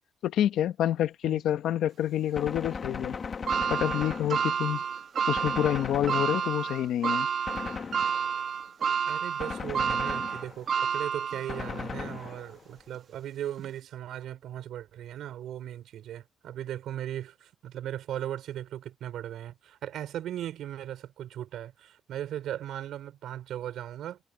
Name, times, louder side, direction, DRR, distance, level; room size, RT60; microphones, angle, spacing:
voice 1, 0.2-3.2 3.7-4.8 5.3-7.3, left 11 dB, 80° left, 1.2 m, -28 dB
Gunshot gunfire, 2.3-4.8 5.4-6.8 7.5-8.5 9.4-10.8 11.5-12.7, left 5 dB, 45° left, 1.2 m, -37 dB
sound 1, 3.5-11.8 12.3-12.4 13.6-13.7, right 7 dB, 55° right, 1.5 m, -30 dB
voice 2, 9.1-24.2, right 11 dB, 80° right, 4.3 m, -38 dB
cardioid pair, 90°, 0 cm